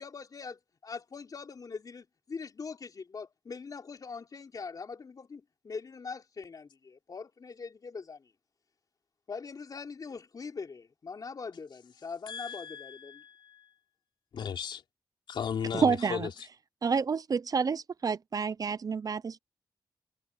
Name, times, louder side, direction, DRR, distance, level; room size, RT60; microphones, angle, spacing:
voice 1, 0.0-8.3 9.3-13.2, left 5 dB, 50° left, 3.8 m, -42 dB
voice 2, 12.3-13.7 14.3-14.8 15.3-16.3, left 7 dB, 85° left, 3.8 m, -36 dB
voice 3, 15.7-16.3 16.8-19.4, right 5 dB, 50° right, 0.8 m, -29 dB
cardioid pair, 85°, 8 cm